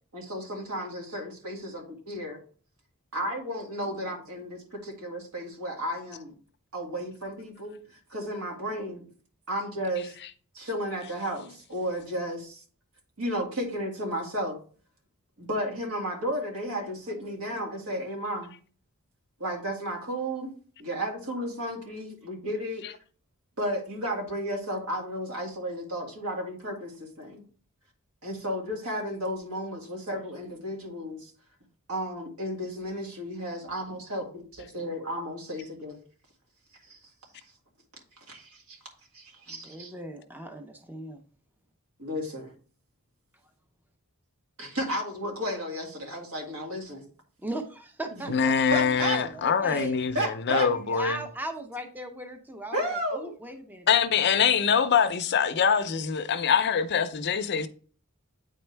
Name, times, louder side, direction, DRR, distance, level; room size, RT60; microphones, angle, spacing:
voice 1, 0.1-2.4 3.1-6.4 6.7-7.7 8.1-9.0 9.5-10.1 10.5-12.6 13.2-14.6 15.4-18.5 19.4-20.5 20.8-22.8 23.6-27.4 28.2-31.3 31.9-36.0 36.9-37.0 38.3-38.8 39.1-39.9 42.0-42.5 44.6-47.0 48.7-49.8 50.1-50.7 52.7-53.3, equal, 75° right, 2.1 m, -33 dB
voice 2, 39.5-41.2 47.4-50.0 50.5-53.9, right 1 dB, 10° right, 0.6 m, -38 dB
voice 3, 48.3-51.3 53.9-57.7, left 7 dB, 50° left, 0.5 m, -24 dB
8.7 x 4.4 x 3.3 m
head